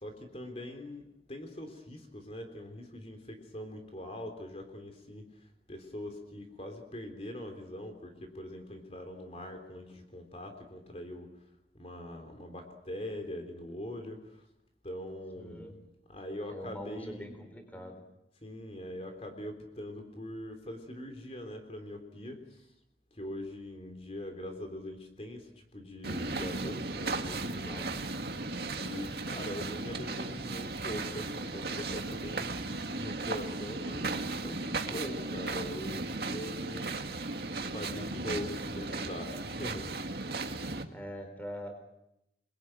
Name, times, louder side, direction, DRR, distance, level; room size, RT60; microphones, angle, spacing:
voice 1, 0.0-5.3 5.7-11.3 11.8-14.4 14.8-15.7 16.1-17.4 18.4-22.7 23.1-28.1 28.7-37.0 37.7-39.9, left 1 dB, 35° left, 5 dB, 3.4 m, -42 dB
voice 2, 15.4-15.7 16.5-18.0 40.9-41.7, equal, 10° left, 6 dB, 4.1 m, -43 dB
sound 1, 26.0-40.8, right 3 dB, 60° right, 2.1 m, -36 dB
29.0 x 22.0 x 9.1 m, 0.86 s
head